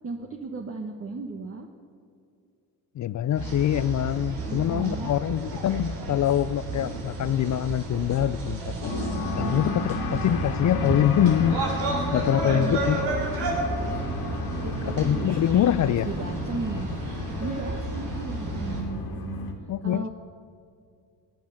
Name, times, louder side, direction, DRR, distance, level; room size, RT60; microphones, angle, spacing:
voice 1, 0.0-1.7 4.5-5.1 9.2-10.0 12.5-12.9 14.5-15.3 15.8-16.9 17.4-19.3 19.8-20.1, right 3 dB, 35° right, 3 dB, 1.4 m, -36 dB
voice 2, 3.0-8.9 9.4-11.6 12.1-13.0 15.0-16.1 19.7-20.1, left 11 dB, 45° left, 16 dB, 0.5 m, -24 dB
sound 1, 3.3-18.8, right 3 dB, 85° right, 3.6 m, -32 dB
sound 2, 8.8-19.5, left 2 dB, 65° left, 2.5 m, -32 dB
17.0 x 10.5 x 7.1 m, 2.4 s
supercardioid pair, 75°, 40 cm